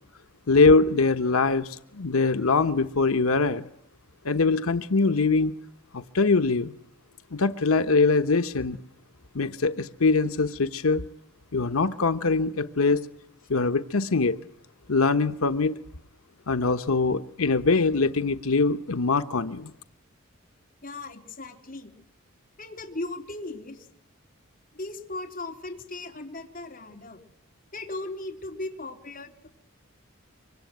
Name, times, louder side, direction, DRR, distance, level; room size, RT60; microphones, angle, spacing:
voice 1, 0.5-3.7 4.2-5.5 5.9-6.7 7.3-8.8 9.3-11.0 11.5-13.0 13.5-14.4 14.9-15.8 16.5-19.7, left 3 dB, 90° left, 10 dB, 1.0 m, -23 dB
voice 2, 20.8-21.9 22.6-23.9 24.7-27.2 27.7-29.5, left 2 dB, 40° left, 2 dB, 3.6 m, -37 dB
25.0 x 24.5 x 9.4 m, 0.76 s
head